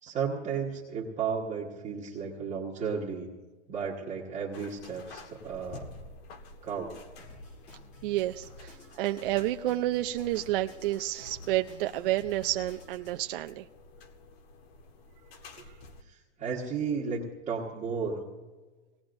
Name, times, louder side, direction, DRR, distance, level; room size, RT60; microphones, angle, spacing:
voice 1, 0.0-3.3 3.7-5.9 6.6-6.9 16.0-18.2, right 6 dB, 20° right, -5 dB, 1.5 m, -33 dB
sound 1, 4.5-16.0, left 3 dB, 55° left, 1.7 m, -51 dB
Drum kit, 7.2-13.2, left 1 dB, 20° left, 1.8 m, -51 dB
voice 2, 8.0-13.7, right 15 dB, 50° right, 7 dB, 0.5 m, -30 dB
23.0 x 18.5 x 2.6 m, 1.2 s
supercardioid pair, 150°, 36 cm